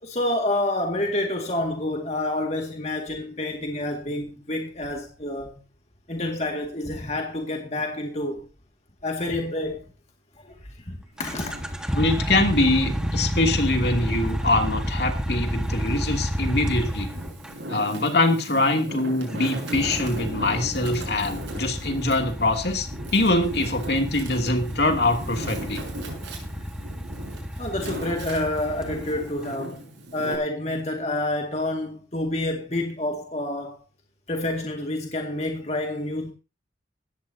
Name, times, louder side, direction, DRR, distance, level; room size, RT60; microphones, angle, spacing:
voice 1, 0.0-5.5 6.1-8.4 9.0-9.9 10.4-11.6 14.1-14.2 15.9-16.0 27.6-29.8 30.1-33.8 34.3-36.3, left 1 dB, 35° left, 2.1 m, -28 dB
Wind, 11.1-14.0 14.5-15.8 16.4-30.4, right 1 dB, 85° right, 7.1 m, -39 dB
sound 1, 11.2-17.6 19.3-29.4, equal, 5° right, 1.5 m, -30 dB
voice 2, 11.9-17.1 17.7-25.8, left 2 dB, 60° left, 2.7 m, -23 dB
18.0 x 14.5 x 2.8 m
head